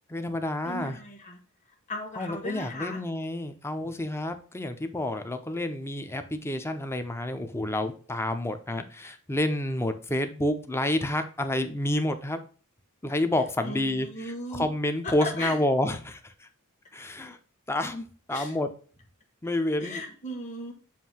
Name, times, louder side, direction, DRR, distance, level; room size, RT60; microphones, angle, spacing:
voice 1, 0.1-1.0 2.2-12.4 13.0-16.5 16.9-17.4 17.7-18.7 19.4-20.0, left 1 dB, 10° left, 8 dB, 0.6 m, -29 dB
voice 2, 0.6-1.4 1.9-3.0 13.6-14.7 15.0-15.6 18.3-18.5 19.8-20.7, left 1 dB, 35° left, 1 dB, 1.3 m, -36 dB
7.5 x 2.7 x 5.5 m, 0.40 s
head